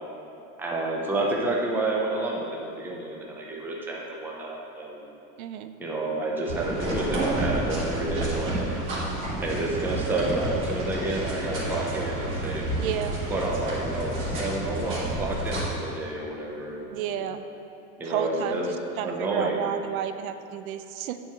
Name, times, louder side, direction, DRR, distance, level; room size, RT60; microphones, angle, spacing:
voice 1, 0.6-5.1 5.8-8.7 9.4-12.7 13.3-17.2 18.0-19.7, right 2 dB, 5° right, -2 dB, 0.6 m, -30 dB
voice 2, 5.4-5.7 12.8-13.2 16.9-17.5 18.0-21.2, right 10 dB, 80° right, 10 dB, 0.7 m, -32 dB
sound 1, 6.5-15.6, right 1 dB, 30° right, 2.1 m, -30 dB
8.6 x 4.8 x 7.3 m, 2.7 s
supercardioid pair, 160°, 42 cm